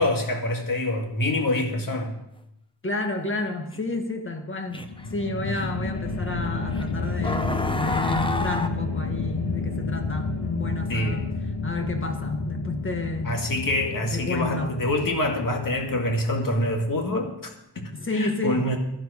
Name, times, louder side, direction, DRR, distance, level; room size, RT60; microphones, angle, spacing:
voice 1, 0.0-2.2 10.9-11.3 13.2-18.8, left 1 dB, 50° left, 3 dB, 2.0 m, -26 dB
voice 2, 2.8-11.3 11.6-13.3 14.1-14.8 17.9-18.7, left 2 dB, 30° left, 5 dB, 1.6 m, -30 dB
sound 1, 3.7-3.8 4.7-5.0 5.6-5.7 6.7-6.8 7.2-8.7, left 2 dB, 10° left, 0.8 m, -29 dB
sound 2, 4.7-17.0, left 3 dB, 65° left, 1.4 m, -31 dB
12.5 x 11.5 x 5.0 m, 0.81 s
wide cardioid pair, 120°, 43 cm